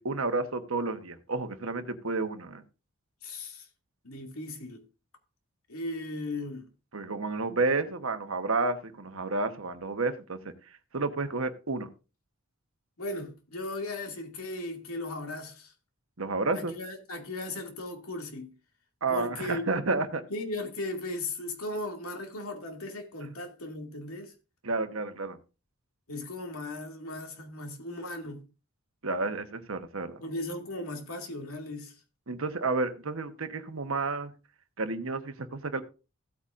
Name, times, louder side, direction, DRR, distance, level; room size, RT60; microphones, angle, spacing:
voice 1, 0.0-2.6 6.9-10.4 10.9-11.9 16.2-16.7 19.0-20.2 24.6-25.4 29.0-30.2 32.3-34.3 34.8-35.8, right 3 dB, 65° right, 1.1 m, -30 dB
voice 2, 3.2-3.7 4.0-4.8 5.7-6.7 13.0-15.7 16.5-18.5 19.1-19.6 20.3-24.3 26.1-28.4 30.2-32.0, left 2 dB, 70° left, 2.4 m, -37 dB
16.0 x 8.4 x 2.6 m
head